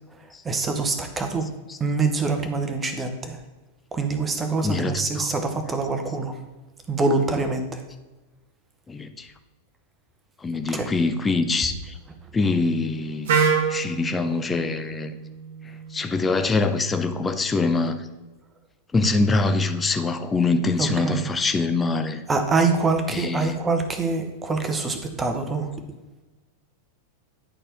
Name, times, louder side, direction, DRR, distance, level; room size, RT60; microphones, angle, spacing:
voice 1, 0.4-1.5 1.8-3.4 3.9-6.4 6.9-7.8 10.7-10.9 20.8-21.2 22.3-25.7, right 3 dB, 15° right, 6 dB, 0.8 m, -25 dB
voice 2, 1.4-1.8 4.6-5.3 7.4-7.5 8.9-9.3 10.4-11.9 12.3-13.3 13.7-15.2 15.9-18.1 18.9-22.2 23.1-23.6, left 3 dB, 15° left, 9 dB, 0.4 m, -24 dB
Wind instrument woodwind instrument, 13.3-17.1, right 6 dB, 55° right, 1.0 m, -27 dB
10.0 x 4.3 x 3.4 m, 1.2 s
figure-of-eight pair, 90°, 0 cm